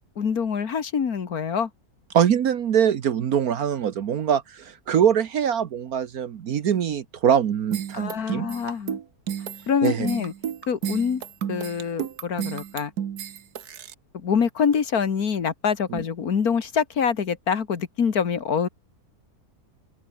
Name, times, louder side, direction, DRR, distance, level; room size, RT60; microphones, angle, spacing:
voice 1, 0.2-1.7 7.9-9.0 9.7-10.3 10.7-11.2 11.5-12.9 14.1-18.7, left 6 dB, 70° left, 2.1 m, -25 dB
voice 2, 2.1-8.5 9.8-10.1 15.9-16.0, right 8 dB, 70° right, 1.5 m, -23 dB
sound 1, 7.7-13.9, right 9 dB, 90° right, 1.7 m, -31 dB
open air
omnidirectional pair, 1.6 m